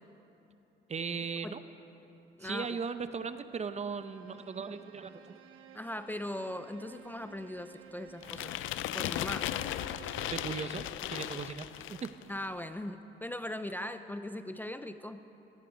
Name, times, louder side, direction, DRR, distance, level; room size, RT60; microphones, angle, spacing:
voice 1, 0.9-1.6 2.4-5.4 10.3-12.1, right 5 dB, 35° right, 11 dB, 0.7 m, -38 dB
voice 2, 2.4-2.8 5.7-8.6 8.9-9.5 12.3-15.2, left 1 dB, 10° left, 10 dB, 0.5 m, -39 dB
Bowed string instrument, 3.9-10.7, right 10 dB, 80° right, 1.3 m, -55 dB
sound 1, 8.2-12.2, left 12 dB, 80° left, 0.5 m, -36 dB
17.0 x 14.5 x 5.2 m, 2.9 s
cardioid pair, 90°, 20 cm